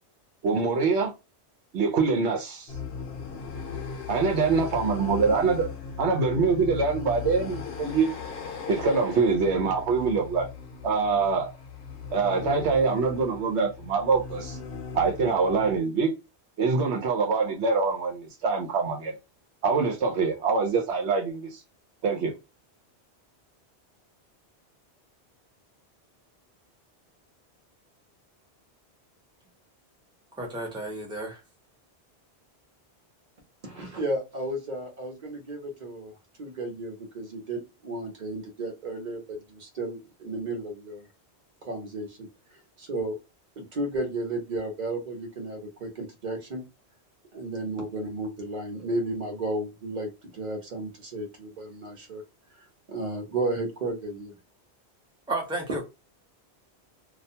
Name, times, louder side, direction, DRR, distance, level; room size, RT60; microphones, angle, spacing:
voice 1, 0.4-1.1 1.7-2.7 4.1-5.7 6.0-8.1 8.7-10.5 10.8-11.5 12.1-14.6 14.9-16.1 16.6-19.1 19.6-21.6 22.0-22.3, right 4 dB, 80° right, 1.0 m, -24 dB
sound 1, 2.7-15.8, left 6 dB, 65° left, 0.7 m, -38 dB
voice 2, 30.4-31.4 55.3-55.8, right 2 dB, 5° right, 0.6 m, -32 dB
voice 3, 33.6-36.1 36.4-41.1 41.6-42.3 42.8-43.2 43.6-46.6 47.3-52.2 52.9-54.3, right 2 dB, 45° right, 0.9 m, -33 dB
2.4 x 2.2 x 2.7 m
omnidirectional pair, 1.1 m